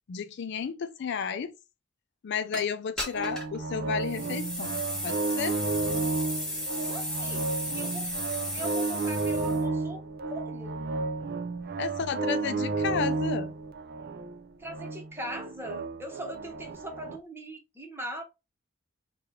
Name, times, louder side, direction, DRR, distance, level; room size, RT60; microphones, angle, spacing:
voice 1, 0.1-1.6 2.2-5.6 11.8-13.5, left 6 dB, 60° left, 0.4 m, -32 dB
sound 1, 2.5-2.6 3.0-3.6 4.0-9.6, left 1 dB, 5° left, 1.5 m, -35 dB
sound 2, 3.1-17.2, right 3 dB, 50° right, 0.4 m, -32 dB
voice 2, 6.8-8.1 8.5-10.0 10.3-10.8 14.6-18.2, equal, 10° right, 1.0 m, -40 dB
3.3 x 2.4 x 4.4 m
head